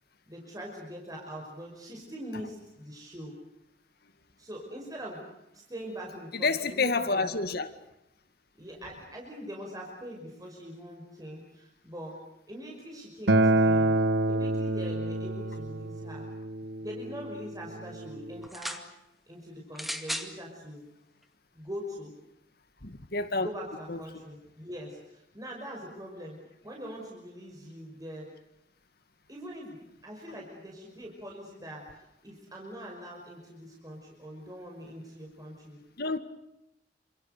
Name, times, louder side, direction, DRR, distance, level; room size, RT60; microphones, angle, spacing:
voice 1, 0.3-3.4 4.4-5.2 5.5-7.3 8.6-12.2 12.5-14.0 14.3-16.3 16.8-18.8 19.3-20.9 21.5-22.1 23.3-28.3 29.3-35.8, equal, 20° right, 5.7 m, -42 dB
voice 2, 6.3-7.7 22.8-23.5 23.9-24.0 36.0-36.2, left 3 dB, 60° left, 2.0 m, -28 dB
Acoustic guitar, 13.3-18.5, right 2 dB, 70° right, 1.1 m, -27 dB
sound 1, 18.4-18.9 19.7-20.3 21.2-21.3, equal, ahead, 2.2 m, -35 dB
28.5 x 27.0 x 6.8 m
head